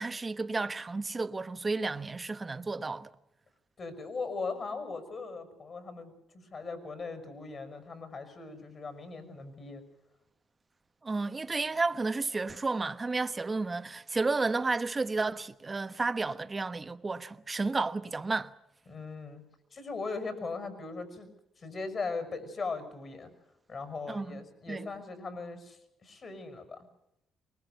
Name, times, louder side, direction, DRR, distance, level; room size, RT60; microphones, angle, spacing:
voice 1, 0.0-3.1 11.0-18.5 24.1-24.4 24.7-24.9, right 3 dB, 25° right, 1.2 m, -32 dB
voice 2, 3.8-9.8 18.9-19.4 19.7-21.3 21.6-23.3 23.7-26.9, left 4 dB, 45° left, 6.1 m, -39 dB
24.0 x 21.0 x 8.0 m
cardioid pair, 90°, 0 cm